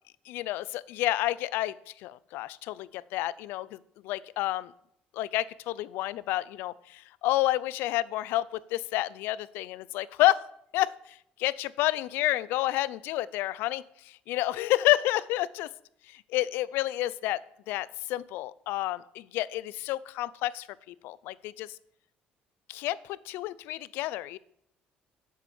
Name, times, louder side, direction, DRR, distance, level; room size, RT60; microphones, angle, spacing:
voice 1, 0.3-4.7 5.1-10.5 10.7-13.8 14.3-15.7 16.1-17.4 17.7-21.8 22.7-24.4, left 16 dB, 85° left, 19 dB, 0.4 m, -30 dB
7.3 x 7.0 x 8.0 m, 0.73 s
cardioid pair, 160°, 4 cm